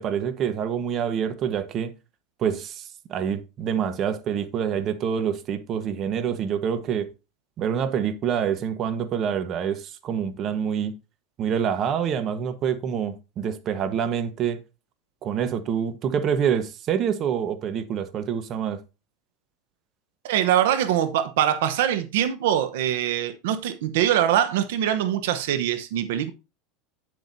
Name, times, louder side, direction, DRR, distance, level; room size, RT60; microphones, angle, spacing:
voice 1, 0.0-1.9 2.4-2.8 3.1-7.1 7.6-10.9 11.4-14.6 15.2-18.8, right 8 dB, 40° right, 1.1 m, -26 dB
voice 2, 20.2-26.3, right 10 dB, 80° right, 0.8 m, -23 dB
9.3 x 7.6 x 2.6 m
supercardioid pair, 130°, 0 cm